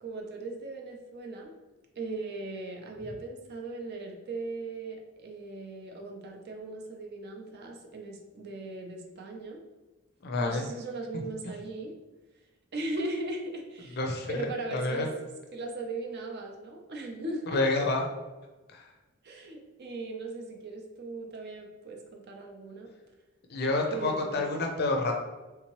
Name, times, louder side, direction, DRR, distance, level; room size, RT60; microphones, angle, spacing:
voice 1, 0.0-1.5 2.0-9.6 10.4-11.9 12.7-14.0 14.3-15.1 15.5-17.6 19.2-22.9 23.9-24.7, right 2 dB, 50° right, 1 dB, 0.5 m, -38 dB
voice 2, 10.2-10.6 11.4-11.5 14.0-15.1 17.5-18.1 18.7-18.8 23.5-25.1, left 2 dB, 45° left, 2 dB, 0.5 m, -29 dB
3.5 x 2.8 x 3.0 m, 1.2 s
head